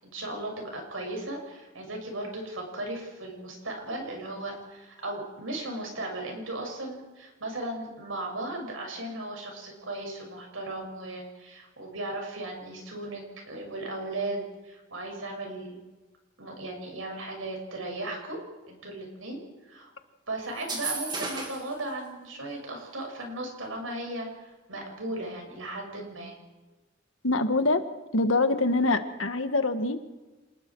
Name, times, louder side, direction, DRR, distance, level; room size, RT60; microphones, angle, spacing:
voice 1, 0.0-15.8 16.4-18.4 18.7-19.9 20.3-26.4, right 2 dB, 85° right, 2 dB, 6.9 m, -36 dB
sound 1, 20.6-21.7, right 3 dB, 20° right, 2.5 m, -33 dB
voice 2, 27.2-27.8 28.1-30.0, left 2 dB, 85° left, 8 dB, 1.6 m, -24 dB
27.5 x 20.5 x 4.8 m, 1.2 s
head